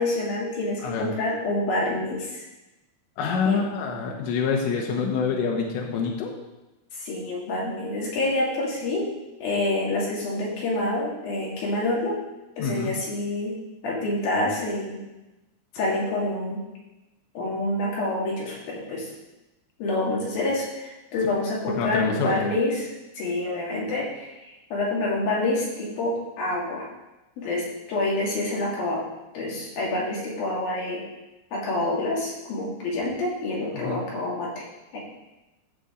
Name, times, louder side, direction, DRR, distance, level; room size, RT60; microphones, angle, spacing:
voice 1, 0.0-2.4 3.4-3.6 7.0-9.1 9.4-12.2 12.6-13.5 13.8-15.0 15.7-16.6 17.4-19.1 19.8-22.9 23.2-26.9 27.4-29.0 29.3-31.0 31.5-34.6 34.9-35.0, left 2 dB, 60° left, -4 dB, 3.7 m, -27 dB
voice 2, 3.2-6.3 12.6-12.9 21.8-22.4 33.7-34.0, left 5 dB, 80° left, 0 dB, 3.5 m, -26 dB
14.0 x 6.9 x 3.8 m, 1.0 s
omnidirectional pair, 5.2 m